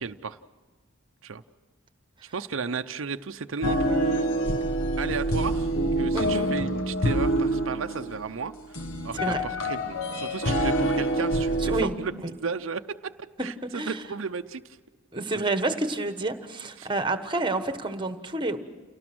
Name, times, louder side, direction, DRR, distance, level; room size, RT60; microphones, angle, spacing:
voice 1, 0.0-0.4 1.2-1.4 2.2-4.3 5.0-8.5 9.0-13.1 13.4-14.8 16.8-16.9, right 5 dB, 65° right, 8 dB, 0.6 m, -34 dB
sound 1, 3.6-11.9, right 1 dB, 75° left, 1.4 m, -26 dB
voice 2, 6.1-6.5 9.1-9.4 11.6-11.9 13.7-14.0 15.1-18.6, right 2 dB, 25° right, 9 dB, 1.3 m, -29 dB
29.0 x 18.5 x 6.1 m, 1.4 s
head